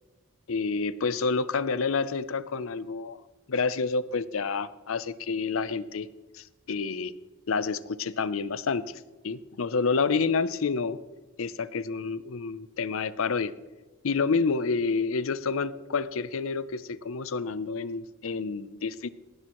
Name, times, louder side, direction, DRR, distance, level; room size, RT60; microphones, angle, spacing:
voice 1, 0.5-3.2 3.5-6.1 6.3-7.1 7.5-11.0 11.4-13.5 14.0-19.1, left 4 dB, 70° left, 16 dB, 0.6 m, -29 dB
18.0 x 10.5 x 3.0 m, 1.2 s
head